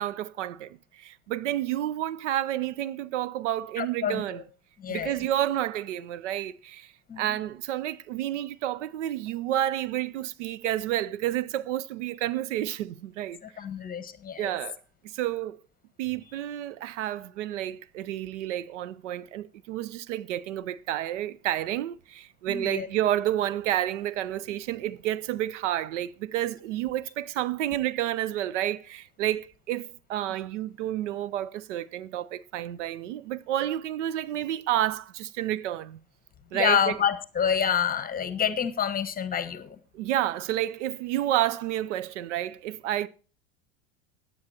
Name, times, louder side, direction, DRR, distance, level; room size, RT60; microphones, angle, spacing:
voice 1, 0.0-4.4 4.9-13.4 14.4-15.6 16.0-36.0 36.5-37.0 39.9-43.1, right 13 dB, 65° right, 0.7 m, -30 dB
voice 2, 3.8-4.4 4.8-5.2 7.1-7.4 13.4-14.5 22.5-22.9 36.5-39.8, left 8 dB, 20° left, 1.3 m, -28 dB
17.0 x 9.5 x 2.9 m
hypercardioid pair, 85°, 38 cm